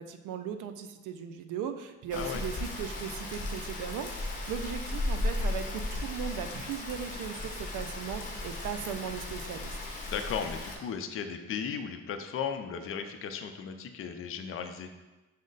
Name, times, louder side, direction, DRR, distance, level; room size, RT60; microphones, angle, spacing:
voice 1, 0.0-9.8, right 8 dB, 85° right, 9 dB, 0.5 m, -38 dB
Rain, 2.1-10.8, left 2 dB, 25° left, 0.8 m, -35 dB
voice 2, 10.1-14.9, left 7 dB, 45° left, 6 dB, 0.5 m, -36 dB
6.2 x 2.1 x 3.9 m, 1.1 s
cardioid pair, 90°, 30 cm